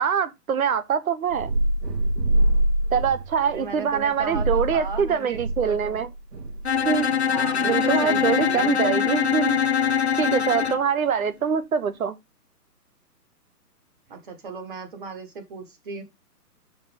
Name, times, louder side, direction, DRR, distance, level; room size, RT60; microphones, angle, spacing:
voice 1, 0.0-1.5 2.9-6.1 6.8-7.1 7.6-9.6 10.2-12.2, right 7 dB, 60° right, 1.2 m, -24 dB
sound 1, 1.3-6.9, right 1 dB, 80° right, 3.4 m, -25 dB
voice 2, 3.4-6.0 7.3-8.7 14.1-16.0, right 5 dB, 30° right, 1.5 m, -36 dB
Bowed string instrument, 6.7-10.9, left 7 dB, 45° left, 0.4 m, -23 dB
6.0 x 5.6 x 5.2 m
hypercardioid pair, 170°, 48 cm